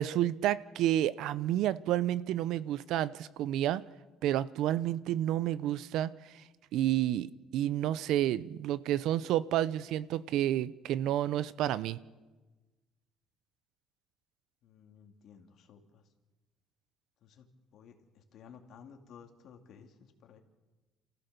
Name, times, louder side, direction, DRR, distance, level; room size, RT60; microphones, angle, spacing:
voice 1, 0.0-3.8 4.2-6.4 6.7-7.3 7.5-12.0, right 12 dB, 70° right, 17 dB, 0.6 m, -30 dB
voice 2, 14.6-16.1 17.2-20.4, left 7 dB, 55° left, 4 dB, 2.4 m, -55 dB
28.5 x 15.0 x 6.8 m, 1.2 s
cardioid pair, 130°, 0 cm